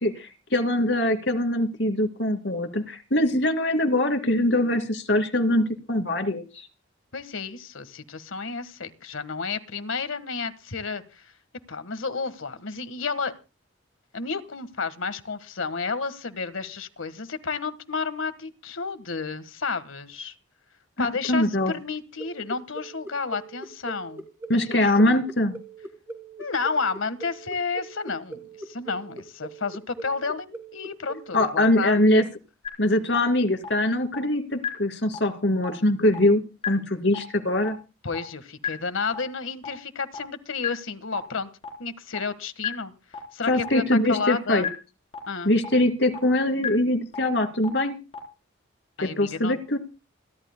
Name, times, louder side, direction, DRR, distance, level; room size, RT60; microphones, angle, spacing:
voice 1, 0.0-6.7 21.0-21.7 24.5-25.5 31.3-32.2 32.8-37.8 43.5-44.7 45.4-48.0 49.0-49.8, left 1 dB, 55° left, 7 dB, 2.5 m, -23 dB
voice 2, 7.1-11.3 11.7-13.3 14.1-20.3 21.0-24.2 24.7-25.2 26.4-32.0 38.0-41.5 41.8-42.9 43.3-44.7 45.3-45.5 49.0-49.6, left 4 dB, 75° left, 12 dB, 1.5 m, -31 dB
sound 1, 22.2-32.0, right 2 dB, 10° right, 1.9 m, -40 dB
sound 2, 32.6-32.7 33.1-33.2 33.6-33.7 34.1-34.2 34.6-34.7 35.1-35.2 35.6-35.7 36.1-36.2 36.6-36.7 37.1-37.2 37.6-37.7 38.1-38.2 38.6-38.7 39.1-39.2 39.6-39.7 40.1-40.2 40.6-40.7 41.1-41.2 41.6-41.7 42.1-42.2 42.6-42.7 43.1-43.2 43.6-43.7 44.1-44.2 44.6-44.7 45.1-45.2 45.6-45.7 46.1-46.2 46.6-46.7 47.1-47.2 47.6-47.7 48.1-48.2, left 8 dB, 30° left, 3.7 m, -29 dB
28.0 x 12.0 x 2.2 m, 0.31 s
head